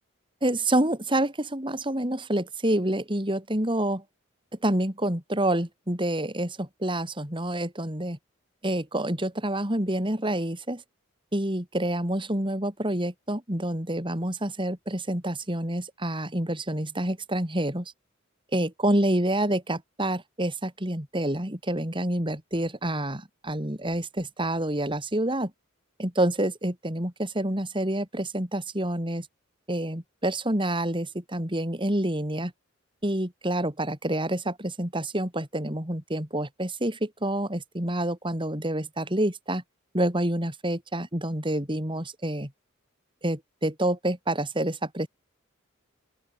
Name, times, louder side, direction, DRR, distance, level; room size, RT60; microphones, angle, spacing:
voice 1, 0.4-4.0 4.6-8.2 8.6-10.8 11.3-17.9 18.5-25.5 26.0-29.3 29.7-32.5 33.0-39.6 39.9-42.5 43.2-45.1, right 1 dB, 25° right, 4.2 m, -28 dB
open air
head